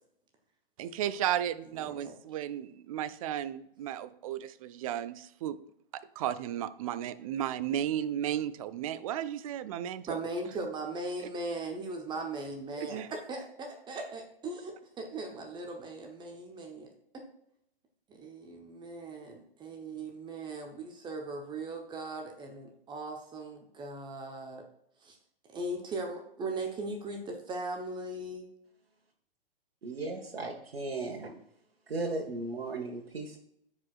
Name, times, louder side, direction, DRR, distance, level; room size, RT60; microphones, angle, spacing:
voice 1, 0.8-5.6 5.9-10.2 12.8-13.1, right 11 dB, 40° right, 14 dB, 0.5 m, -34 dB
voice 2, 1.8-2.1 10.1-16.9 17.1-17.2 18.1-24.6 25.0-25.2 25.5-28.5, right 2 dB, 15° right, 3 dB, 1.0 m, -39 dB
voice 3, 29.8-31.4 31.9-33.4, right 3 dB, 80° right, 0 dB, 1.4 m, -36 dB
13.5 x 5.0 x 2.5 m, 0.75 s
figure-of-eight pair, 120°, 29 cm